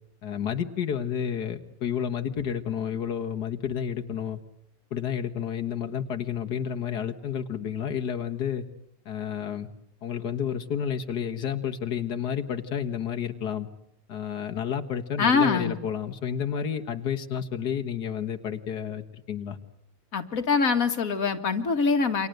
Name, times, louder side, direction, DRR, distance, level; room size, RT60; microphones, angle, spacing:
voice 1, 0.2-4.4 4.9-8.7 9.1-9.7 10.0-13.7 14.1-19.6, left 8 dB, 90° left, 4 dB, 2.0 m, -30 dB
voice 2, 15.2-15.8 20.1-22.3, left 5 dB, 60° left, 6 dB, 2.3 m, -24 dB
29.0 x 25.0 x 7.9 m, 0.74 s
omnidirectional pair, 1.7 m